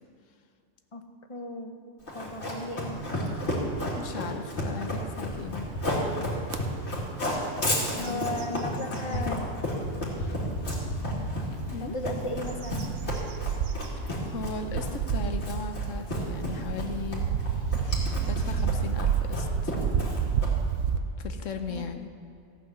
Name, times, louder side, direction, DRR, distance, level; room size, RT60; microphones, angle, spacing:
voice 1, 0.9-1.8 2.1-3.0 8.0-9.5 11.8-12.9 21.7-21.8, left 1 dB, 30° left, 5 dB, 1.0 m, -35 dB
Run, 2.1-20.7, left 1 dB, 60° left, 2.8 m, -32 dB
voice 2, 3.9-5.7 7.9-8.3 8.9-9.4 10.0-10.4 11.7-12.0 14.0-19.8 21.2-22.1, left 5 dB, 90° left, 7 dB, 1.2 m, -38 dB
sound 1, 6.5-6.6 7.1-7.4 7.7-9.2 9.8-9.9 11.6-21.0, right 7 dB, 85° right, 1.1 m, -30 dB
14.5 x 8.9 x 6.1 m, 2.4 s
omnidirectional pair, 1.3 m